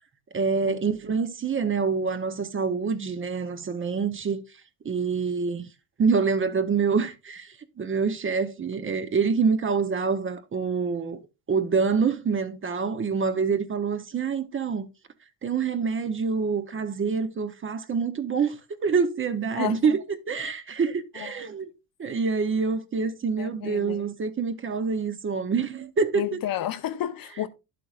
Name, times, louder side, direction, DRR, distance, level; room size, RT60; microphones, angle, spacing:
voice 1, 0.3-4.4 4.8-5.7 6.0-11.2 11.5-14.9 15.4-18.6 18.8-20.0 20.3-21.7 22.0-26.4, right 5 dB, 25° right, 0.8 m, -26 dB
voice 2, 23.4-24.1 26.1-27.5, left 12 dB, 50° left, 0.9 m, -31 dB
11.0 x 7.7 x 2.4 m
cardioid pair, 105°, 46 cm